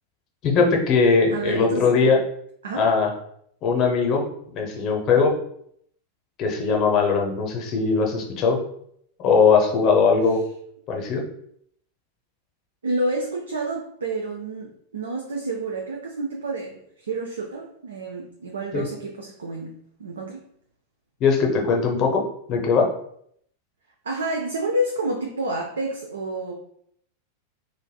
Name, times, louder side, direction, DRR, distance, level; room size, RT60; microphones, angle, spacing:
voice 1, 0.4-2.2 2.7-3.1 3.6-4.2 4.5-5.3 6.4-8.6 9.2-10.4 10.9-11.2 18.7-18.8 21.2-22.2 22.5-22.9, left 5 dB, 35° left, 1 dB, 0.6 m, -20 dB
voice 2, 1.3-2.2 2.6-2.9 12.8-20.4 24.0-26.5, right 1 dB, 70° right, 1 dB, 0.4 m, -29 dB
3.2 x 2.5 x 2.2 m, 0.68 s
figure-of-eight pair, 90°, 0 cm